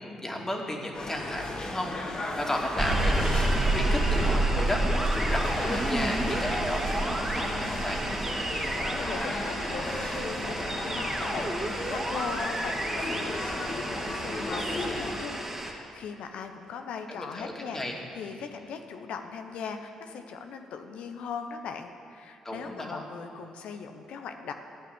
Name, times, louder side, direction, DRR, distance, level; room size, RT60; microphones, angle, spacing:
voice 1, 0.0-8.0 17.1-17.9 22.4-23.0, left 1 dB, 20° left, 0 dB, 2.6 m, -34 dB
sound 1, 0.9-15.2, left 2 dB, 45° left, 2.4 m, -35 dB
sound 2, 2.8-15.7, right 2 dB, 20° right, 2.3 m, -29 dB
voice 2, 9.0-24.5, left 6 dB, 65° left, 6 dB, 1.0 m, -40 dB
12.5 x 8.5 x 8.5 m, 2.4 s
hypercardioid pair, 45°, 2 cm